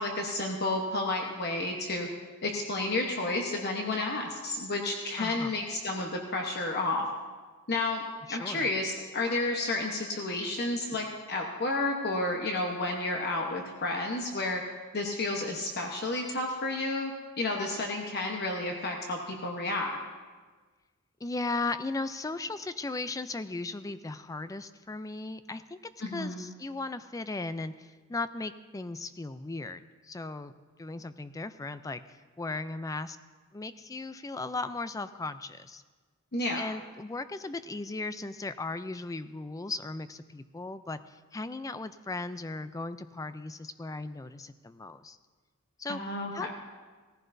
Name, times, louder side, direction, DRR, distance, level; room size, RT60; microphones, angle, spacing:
voice 1, 0.0-2.1 2.4-7.1 7.7-8.0 8.3-14.6 14.9-17.1 17.4-20.0 26.0-26.5 36.3-36.6 45.9-46.5, left 2 dB, 45° left, 1 dB, 1.0 m, -31 dB
voice 2, 5.2-5.6 8.3-8.7 21.2-25.8 26.1-30.5 30.8-33.2 33.5-35.8 36.6-45.2 45.8-46.0 46.3-46.7, left 3 dB, 15° left, 12 dB, 0.3 m, -37 dB
18.0 x 14.5 x 2.6 m, 1.4 s
head